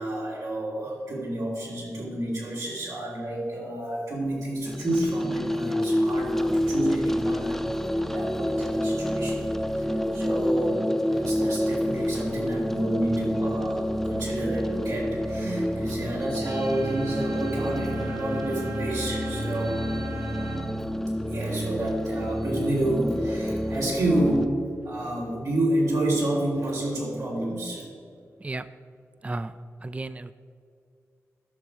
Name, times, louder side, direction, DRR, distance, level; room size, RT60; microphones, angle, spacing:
voice 1, 0.0-19.9 21.3-27.8, right 1 dB, 85° right, -5 dB, 2.9 m, -29 dB
sound 1, 4.7-24.5, equal, 5° left, 0.7 m, -28 dB
sound 2, 16.4-20.6, right 1 dB, 65° right, 1.7 m, -37 dB
voice 2, 29.8-30.3, right 2 dB, 25° right, 13 dB, 0.4 m, -33 dB
13.0 x 6.2 x 4.9 m, 2.3 s
cardioid pair, 45°, 6 cm